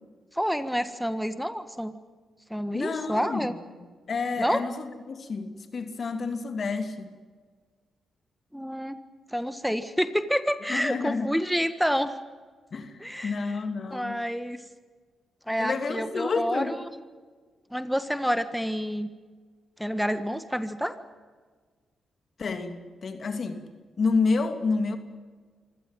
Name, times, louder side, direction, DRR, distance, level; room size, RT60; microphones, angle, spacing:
voice 1, 0.3-1.9 2.5-3.6 4.4-4.6 8.5-9.0 9.3-12.1 13.0-13.3 13.9-14.6 15.5-16.6 17.7-19.1 19.8-20.9, equal, ahead, 11 dB, 1.5 m, -28 dB
voice 2, 2.7-3.5 3.8-7.2 10.7-11.3 12.7-14.2 15.6-16.7 22.4-23.6 24.0-25.0, left 4 dB, 55° left, 8 dB, 2.7 m, -29 dB
25.5 x 16.5 x 9.1 m, 1.5 s
supercardioid pair, 50°, 0 cm